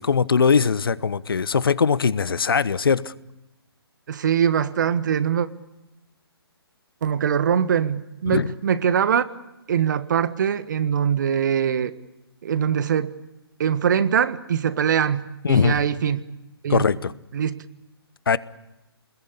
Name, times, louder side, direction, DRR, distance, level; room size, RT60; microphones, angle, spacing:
voice 1, 0.0-3.1 8.3-8.5 15.4-15.8 16.7-17.1 18.3-18.4, left 6 dB, 60° left, 1.1 m, -20 dB
voice 2, 4.1-5.5 7.0-9.2 9.7-11.9 12.4-13.1 13.6-16.3 16.6-16.9 17.3-17.6, right 8 dB, 50° right, 1.5 m, -22 dB
30.0 x 21.0 x 8.5 m
figure-of-eight pair, 130°, 13 cm